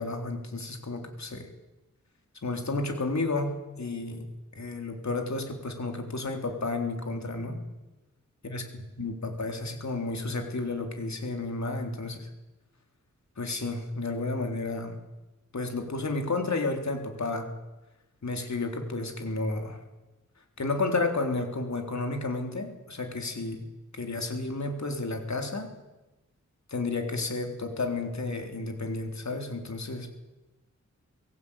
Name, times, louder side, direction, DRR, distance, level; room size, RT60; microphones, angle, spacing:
voice 1, 0.0-1.5 2.4-4.2 4.5-7.6 8.4-8.6 9.0-12.3 13.4-14.9 15.5-17.5 18.2-19.8 20.6-23.6 23.9-25.7 26.7-30.1, left 3 dB, 65° left, 4 dB, 3.8 m, -32 dB
23.5 x 16.5 x 8.9 m, 1.1 s
wide cardioid pair, 100°, 30 cm